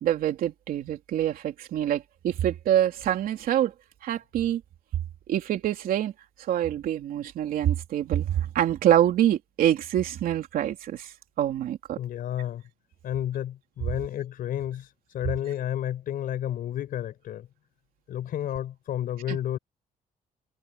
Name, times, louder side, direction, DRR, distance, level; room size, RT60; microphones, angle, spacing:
voice 1, 0.0-3.7 4.0-4.6 5.3-6.1 6.5-12.0 19.3-19.4, right 11 dB, 80° right, 3.3 m, -25 dB
voice 2, 12.0-12.6 13.0-14.9 15.1-17.5 18.1-19.6, left 11 dB, 75° left, 5.0 m, -31 dB
cardioid pair, 145°, 15 cm